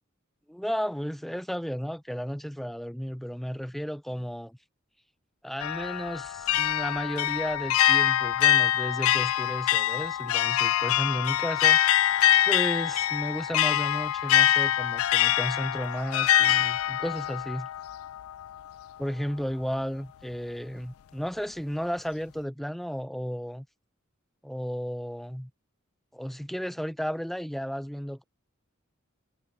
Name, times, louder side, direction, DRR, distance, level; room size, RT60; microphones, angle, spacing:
voice 1, 0.5-4.6 5.4-11.8 12.5-17.7 19.0-23.7 24.4-25.5 26.1-28.2, equal, ahead, 0.5 m, -33 dB
sound 1, 5.6-18.6, left 12 dB, 85° left, 0.4 m, -24 dB
head